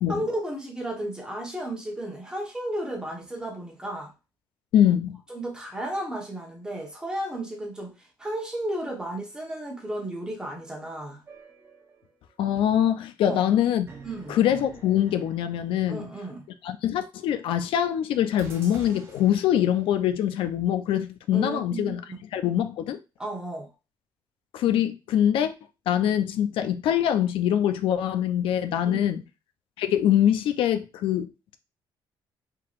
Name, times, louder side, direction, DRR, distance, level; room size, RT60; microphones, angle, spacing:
voice 1, 0.1-4.1 5.3-7.9 8.2-11.2 13.2-13.4 14.0-14.4 15.9-16.4 21.3-22.2 23.2-23.7 28.8-29.1, right 1 dB, 10° right, 1.1 m, -33 dB
voice 2, 4.7-5.2 12.4-13.9 14.3-16.1 16.6-22.0 22.3-23.0 24.5-25.5 25.9-29.2 29.8-31.5, left 10 dB, 90° left, 0.5 m, -24 dB
sound 1, 11.3-12.3 13.9-16.5 18.4-20.1, right 4 dB, 30° right, 0.9 m, -48 dB
4.7 x 3.8 x 2.5 m
cardioid pair, 175°, 9 cm